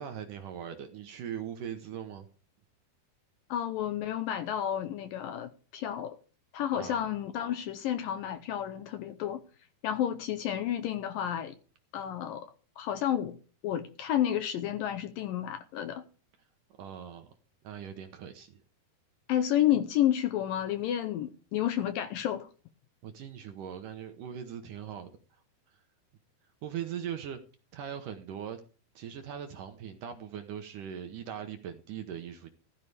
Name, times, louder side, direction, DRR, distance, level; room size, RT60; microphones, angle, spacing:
voice 1, 0.0-2.3 6.7-7.0 16.8-17.3 17.6-18.6 23.0-25.1 26.6-27.4 27.7-28.6 29.0-32.5, right 9 dB, 70° right, 2.2 m, -40 dB
voice 2, 3.5-6.2 6.5-9.4 9.8-11.6 11.9-12.5 12.8-13.4 13.6-16.0 19.3-22.5, left 11 dB, 75° left, 2.2 m, -31 dB
15.0 x 13.5 x 3.4 m
omnidirectional pair, 4.7 m